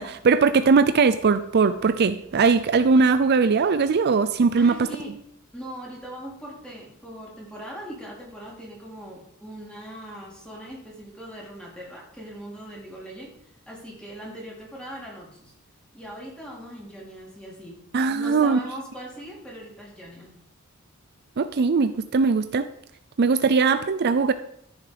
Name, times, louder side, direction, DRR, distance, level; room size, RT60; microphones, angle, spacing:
voice 1, 0.0-4.7 17.9-18.6 21.4-22.7 23.2-24.3, right 4 dB, 50° right, 12 dB, 0.5 m, -20 dB
voice 2, 4.6-5.2 5.5-13.4 13.7-15.5 15.9-17.8 18.1-20.3, equal, 5° left, -5 dB, 4.2 m, -40 dB
13.5 x 7.2 x 5.1 m, 0.72 s
head